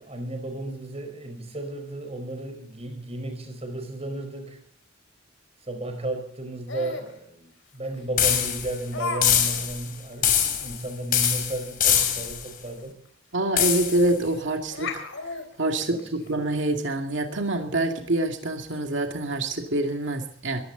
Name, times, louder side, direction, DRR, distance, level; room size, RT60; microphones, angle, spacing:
voice 1, 0.0-4.6 5.6-13.0 15.9-16.3, right 1 dB, 30° right, 6 dB, 4.9 m, -34 dB
Laughter, 6.7-7.1 7.9-8.0 8.9-9.2 9.5-9.6 10.1-10.2 10.6-10.7 12.7-12.8 13.1-13.2 14.1-14.4 14.7-16.3, left 3 dB, 75° left, 3.5 m, -33 dB
sound 1, 8.2-8.8 9.2-9.8 10.2-10.8 11.1-12.4 13.6-14.1, left 9 dB, 45° left, 3.2 m, -23 dB
voice 2, 13.3-15.0 15.6-20.6, right 2 dB, 65° right, 4 dB, 2.4 m, -26 dB
21.5 x 16.0 x 4.0 m, 0.65 s
head